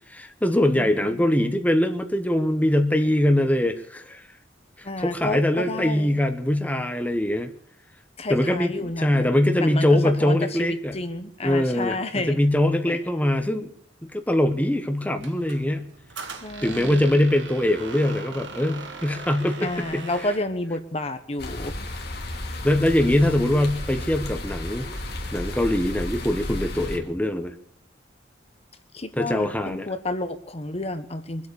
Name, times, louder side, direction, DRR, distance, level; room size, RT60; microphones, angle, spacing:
voice 1, 0.1-4.3 4.8-7.5 8.3-10.9 11.4-12.0 12.3-13.7 14.1-15.8 16.6-20.0 22.6-24.9 25.3-27.5 29.2-29.9, left 1 dB, 10° left, 6 dB, 1.1 m, -22 dB
voice 2, 0.7-1.5 4.8-6.2 8.2-9.3 9.6-12.4 12.9-13.0 16.4-17.2 19.6-22.0 28.9-31.5, left 2 dB, 35° left, 9 dB, 1.1 m, -31 dB
Squeak, 15.2-20.5, right 4 dB, 75° right, 1.9 m, -40 dB
sound 1, 21.4-27.0, left 1 dB, 60° left, 2.7 m, -33 dB
24.0 x 8.4 x 6.9 m, 0.64 s
head